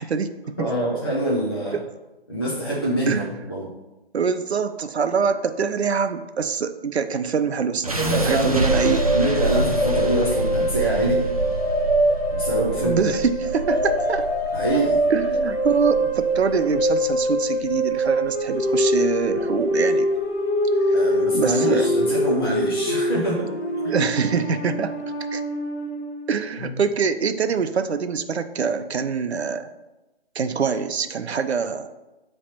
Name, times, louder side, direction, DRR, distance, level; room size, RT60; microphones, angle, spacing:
voice 1, 0.0-0.7 1.7-1.8 3.1-3.3 4.1-9.0 12.8-14.3 15.1-20.1 21.3-21.9 23.9-24.9 25.3-25.4 26.3-29.7 30.3-31.9, right 6 dB, 80° right, 10 dB, 0.7 m, -24 dB
voice 2, 0.6-1.8 2.3-3.2 3.5-3.7 8.0-8.6 9.1-11.3 12.3-13.0 14.5-15.0 20.9-23.5 23.8-24.0 26.6-26.8, right 1 dB, 25° left, -6 dB, 0.7 m, -25 dB
sound 1, 7.8-19.9, right 2 dB, 35° right, 0.5 m, -29 dB
sound 2, 8.7-26.1, equal, 65° left, 1.8 m, -24 dB
8.7 x 3.3 x 4.2 m, 1.0 s
hypercardioid pair, 175°, 32 cm